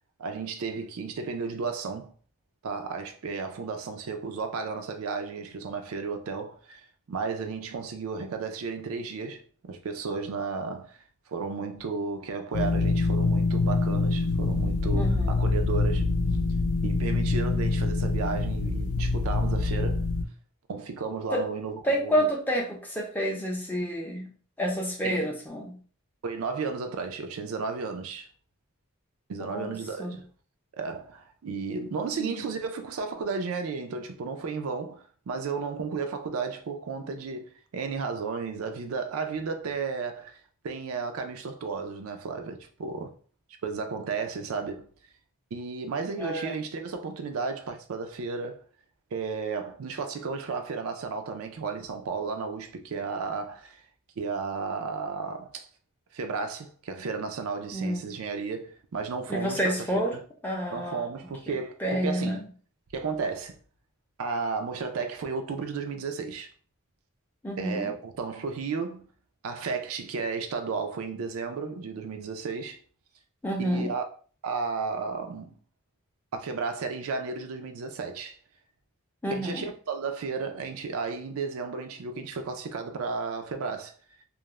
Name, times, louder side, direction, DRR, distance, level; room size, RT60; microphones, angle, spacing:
voice 1, 0.2-2.1 2.6-11.0 11.3-16.1 16.8-20.0 20.7-22.3 25.0-25.3 26.2-28.3 29.3-30.3 30.8-40.4 40.6-43.1 43.6-44.9 45.5-48.6 49.1-53.8 54.2-55.7 56.1-60.2 60.7-62.4 62.9-63.6 64.2-66.5 67.6-69.1 69.4-72.8 73.6-74.0 74.4-75.6 76.3-78.4 79.3-83.9, right 4 dB, 80° right, 0.4 m, -33 dB
sound 1, 12.5-20.2, left 3 dB, 75° left, 0.4 m, -25 dB
voice 2, 14.9-15.4 21.3-21.4 21.8-24.3 24.6-25.7 29.4-30.2 32.1-32.5 46.2-46.6 57.7-58.1 59.3-60.1 60.4-61.1 61.5-61.6 61.8-62.5 67.4-67.9 73.4-73.9 79.2-79.6, equal, 10° left, 0.4 m, -29 dB
2.3 x 2.0 x 3.0 m
head